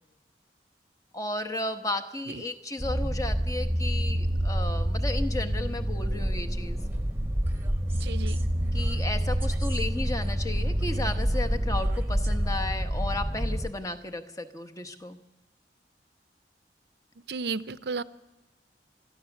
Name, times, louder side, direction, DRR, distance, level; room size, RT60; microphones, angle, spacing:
voice 1, 1.1-6.8 8.7-15.2, left 2 dB, 20° left, 7 dB, 1.1 m, -34 dB
sound 1, 2.8-13.7, equal, 15° right, 1.1 m, -27 dB
voice 2, 7.9-8.4 17.3-18.0, right 4 dB, 65° right, 15 dB, 0.6 m, -33 dB
30.0 x 12.5 x 7.1 m, 1.1 s
head